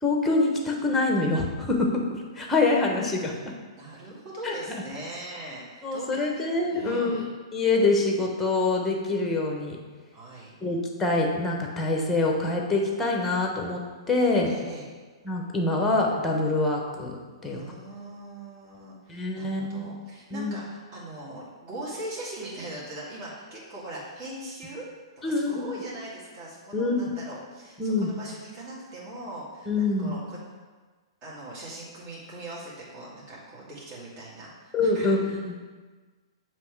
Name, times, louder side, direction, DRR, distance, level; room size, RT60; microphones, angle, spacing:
voice 1, 0.0-2.0 2.3-3.3 4.4-4.6 5.8-7.2 7.5-9.8 10.6-13.8 14.1-14.5 15.2-17.1 17.4-17.6 19.1-19.9 20.3-20.5 25.2-25.8 26.7-27.1 27.8-28.1 29.7-30.2 34.7-35.6, left 2 dB, 10° left, 1 dB, 1.0 m, -25 dB
voice 2, 3.7-6.3 6.7-7.3 10.1-10.6 14.4-14.9 17.5-24.8 25.2-30.4 31.2-35.6, right 1 dB, 35° right, -6 dB, 2.0 m, -40 dB
7.5 x 3.1 x 4.7 m, 1.4 s
hypercardioid pair, 115°, 3 cm